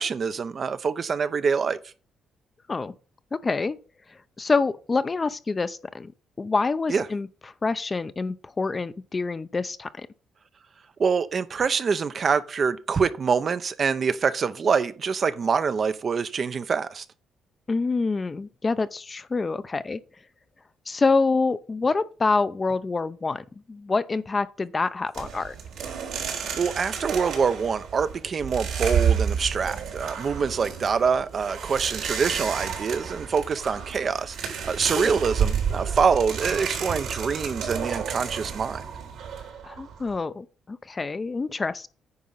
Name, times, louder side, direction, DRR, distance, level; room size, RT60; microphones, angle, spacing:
voice 1, 0.0-1.8 6.9-7.1 11.0-17.0 26.5-38.8, right 6 dB, 45° right, 0.7 m, -25 dB
voice 2, 3.3-3.8 4.4-6.1 6.4-7.3 7.6-10.1 17.7-20.0 20.9-25.5 34.9-35.1 39.6-41.9, left 4 dB, 30° left, 0.6 m, -26 dB
sound 1, 25.1-40.2, right 7 dB, 80° right, 3.9 m, -30 dB
9.6 x 4.8 x 5.6 m
cardioid pair, 90°, 0 cm